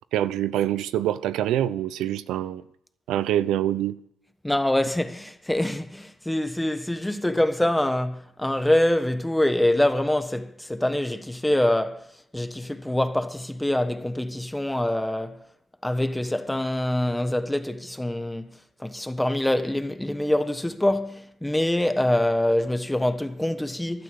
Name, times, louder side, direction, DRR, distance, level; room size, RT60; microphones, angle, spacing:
voice 1, 0.1-2.6 3.1-4.0, right 12 dB, 85° right, 0.8 m, -25 dB
voice 2, 4.4-15.4 15.8-24.0, left 1 dB, 5° left, 1.2 m, -25 dB
16.0 x 12.0 x 7.0 m
cardioid pair, 90°, 0 cm